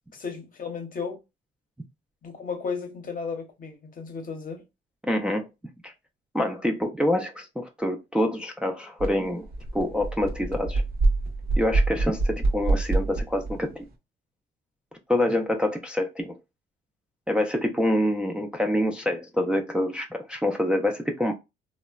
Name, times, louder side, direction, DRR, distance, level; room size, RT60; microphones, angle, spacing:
voice 1, 0.1-1.2 2.2-4.6, left 5 dB, 45° left, 0.7 m, -34 dB
voice 2, 5.0-5.5 5.8-5.9 6.3-9.5 9.7-10.8 11.6-13.9 15.1-16.3 17.3-21.3, left 1 dB, 5° right, 0.3 m, -26 dB
sound 1, 9.0-9.1 9.4-13.6, right 2 dB, 50° right, 0.8 m, -25 dB
3.0 x 2.0 x 2.2 m
cardioid pair, 90°, 20 cm